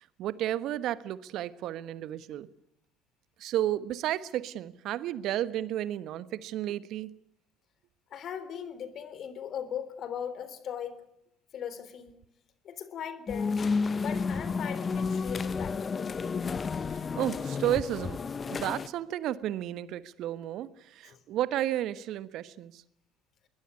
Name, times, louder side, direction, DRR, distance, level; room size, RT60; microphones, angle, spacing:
voice 1, 0.0-2.5 3.4-7.1 16.9-18.2 18.5-22.8, right 12 dB, 55° right, 15 dB, 1.3 m, -32 dB
voice 2, 8.1-11.0 11.5-12.1 12.6-13.7 14.0-16.2 21.1-21.2, left 8 dB, 45° left, 13 dB, 3.5 m, -39 dB
sound 1, 13.3-18.9, left 5 dB, 30° left, 1.0 m, -31 dB
22.0 x 20.0 x 9.7 m, 0.77 s
figure-of-eight pair, 60°, 0 cm